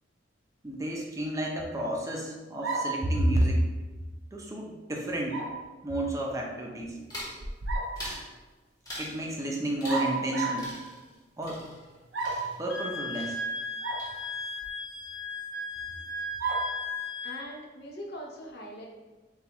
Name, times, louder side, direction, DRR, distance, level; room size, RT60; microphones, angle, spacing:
voice 1, 0.6-3.7 4.3-5.4 5.8-7.0 9.0-10.7 11.4-11.6 12.6-13.4, right 1 dB, 20° right, -1 dB, 0.6 m, -30 dB
sound 1, 2.6-3.1 5.3-5.6 7.4-8.0 9.9-10.7 12.1-12.6 13.8-14.1 14.6-14.7 16.4-16.8, right 3 dB, 85° right, 0.6 m, -31 dB
sound 2, 7.1-7.4 8.0-8.3 8.9-9.2 9.8-10.3 10.6-12.9 13.1-13.7 14.0-14.5, equal, 20° left, 1.3 m, -42 dB
Wind instrument woodwind instrument, 12.7-17.4, left 2 dB, 90° left, 0.6 m, -36 dB
voice 2, 17.2-18.9, equal, 60° left, -1 dB, 0.8 m, -41 dB
6.9 x 2.4 x 3.0 m, 1.2 s
head